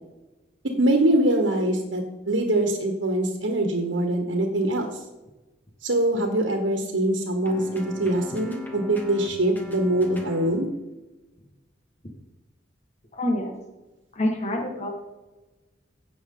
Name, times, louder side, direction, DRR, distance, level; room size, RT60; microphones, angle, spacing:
voice 1, 0.8-4.9 5.8-10.7, right 1 dB, 80° right, 2 dB, 1.4 m, -23 dB
sound 1, 7.4-10.6, left 1 dB, 10° left, 1.8 m, -40 dB
voice 2, 13.1-13.6 14.1-14.9, left 1 dB, 40° left, 1 dB, 1.7 m, -26 dB
16.0 x 6.1 x 3.9 m, 1.1 s
head